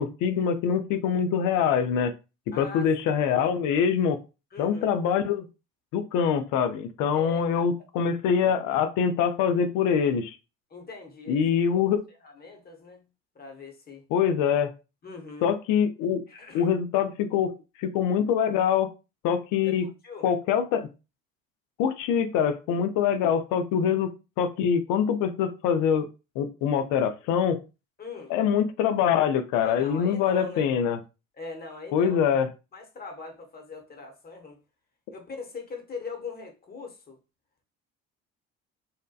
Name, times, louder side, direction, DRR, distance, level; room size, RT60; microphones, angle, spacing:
voice 1, 0.0-2.1 2.5-4.2 4.6-5.5 5.9-10.4 11.3-12.0 14.1-14.7 15.4-16.2 16.5-17.5 17.8-18.9 19.2-19.9 20.2-20.9 21.8-26.1 26.4-27.6 28.3-31.0 31.9-32.5, left 7 dB, 65° left, 0.5 m, -24 dB
voice 2, 2.5-3.1 4.5-4.9 7.1-7.6 10.7-11.4 11.7-11.8 12.2-13.1 13.3-14.0 15.0-15.5 16.3-16.7 19.6-20.3 28.0-28.3 29.6-30.7 31.4-32.2 32.7-34.6 35.1-37.2, left 4 dB, 25° left, 0.9 m, -41 dB
2.7 x 2.1 x 2.2 m
hypercardioid pair, 65°, 34 cm